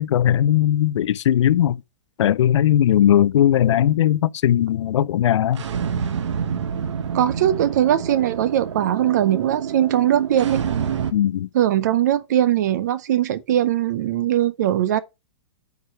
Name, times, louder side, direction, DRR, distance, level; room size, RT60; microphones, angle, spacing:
voice 1, 0.0-1.8 2.2-5.6 11.1-11.5, left 11 dB, 85° left, 0.4 m, -18 dB
sound 1, 5.5-11.1, right 7 dB, 80° right, 1.2 m, -27 dB
voice 2, 7.1-10.6 11.5-15.0, right 11 dB, 40° right, 0.6 m, -20 dB
9.3 x 4.7 x 4.4 m
hypercardioid pair, 175°, 15 cm